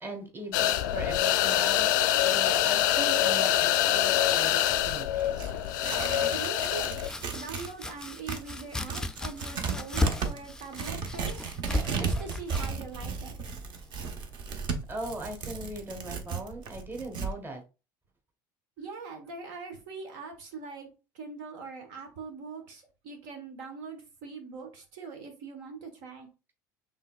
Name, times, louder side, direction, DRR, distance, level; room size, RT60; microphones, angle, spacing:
voice 1, 0.0-5.3 14.9-17.6, right 1 dB, 20° right, 4 dB, 1.4 m, -39 dB
sound 1, 0.5-7.1, left 12 dB, 80° left, 0.4 m, -25 dB
Tearing, 4.0-7.7 8.0-17.3, right 5 dB, 50° right, 0.9 m, -35 dB
voice 2, 6.3-7.0 7.3-11.5 11.9-13.4 18.8-20.9 21.1-26.3, right 4 dB, 75° right, 3 dB, 1.2 m, -42 dB
Domestic sounds home sounds, 6.7-14.4, left 2 dB, 5° left, 0.4 m, -36 dB
5.5 x 3.3 x 2.4 m, 0.31 s
supercardioid pair, 90°, 10 cm